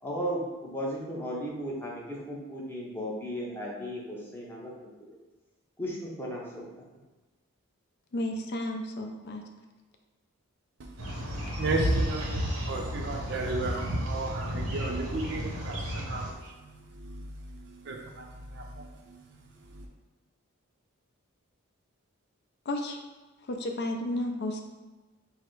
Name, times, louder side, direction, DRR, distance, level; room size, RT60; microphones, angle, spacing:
voice 1, 0.0-4.9 5.8-6.8, equal, 10° left, -4 dB, 0.7 m, -35 dB
voice 2, 8.1-9.4 22.7-23.0 23.5-24.6, left 1 dB, 50° left, 4 dB, 0.4 m, -32 dB
voice 3, 10.8-19.9, right 2 dB, 55° right, 0 dB, 0.5 m, -36 dB
sound 1, 11.0-16.3, equal, 90° right, 0.9 m, -32 dB
4.8 x 2.0 x 4.5 m, 1.2 s
head